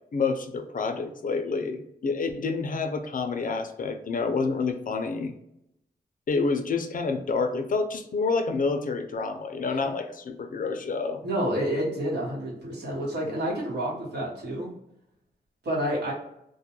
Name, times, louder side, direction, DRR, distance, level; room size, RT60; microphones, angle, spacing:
voice 1, 0.1-5.3 6.3-11.2, left 4 dB, 55° left, 6 dB, 0.4 m, -28 dB
voice 2, 11.2-14.7 15.6-16.1, equal, 85° right, -4 dB, 1.1 m, -29 dB
2.3 x 2.1 x 2.8 m, 0.79 s
wide cardioid pair, 75°, 17 cm